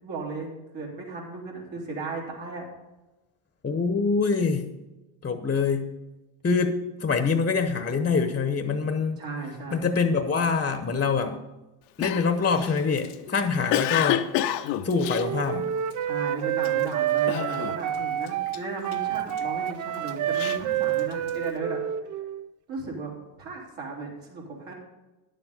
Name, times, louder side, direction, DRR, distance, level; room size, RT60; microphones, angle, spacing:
voice 1, 0.0-2.7 9.2-9.9 16.0-21.8 22.7-23.1 23.4-24.7, right 3 dB, 60° right, -2 dB, 3.8 m, -36 dB
voice 2, 3.6-4.7 5.2-5.9 6.4-9.2 9.7-11.4 12.0-14.3 14.8-15.7, left 5 dB, 20° left, 8 dB, 0.9 m, -25 dB
Cough, 12.0-16.1 16.6-16.9 17.3-18.0 18.2-19.4 19.9-21.4, left 12 dB, 90° left, 0.8 m, -29 dB
Wind instrument woodwind instrument, 15.0-22.5, right 11 dB, 40° right, 0.5 m, -28 dB
10.5 x 7.4 x 5.3 m, 1.1 s
supercardioid pair, 90°, 48 cm